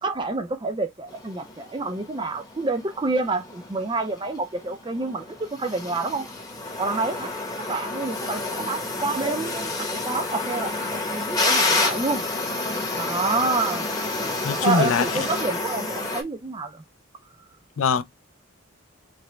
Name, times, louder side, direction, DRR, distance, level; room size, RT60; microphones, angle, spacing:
voice 1, 0.0-6.3 6.8-7.3 7.7-12.2 12.9-13.9 14.6-16.8, right 3 dB, 20° right, 0.4 m, -28 dB
sound 1, 1.1-16.2, left 2 dB, 15° left, 1.0 m, -29 dB
voice 2, 14.4-15.1 17.8-18.0, left 5 dB, 70° left, 0.5 m, -22 dB
5.0 x 2.2 x 3.1 m
head